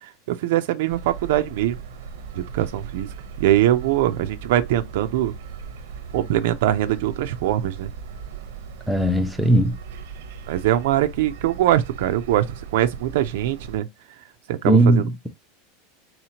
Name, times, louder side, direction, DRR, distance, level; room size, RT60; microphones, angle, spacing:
voice 1, 0.0-1.8 2.4-3.1 3.4-5.3 6.1-7.9 10.5-13.9 14.5-15.0, right 13 dB, 65° right, 0.4 m, -22 dB
sound 1, 0.9-13.8, right 6 dB, 85° right, 0.8 m, -38 dB
voice 2, 8.9-9.8 14.7-15.3, right 1 dB, 5° right, 0.5 m, -18 dB
4.1 x 2.8 x 2.8 m
supercardioid pair, 175°, 0 cm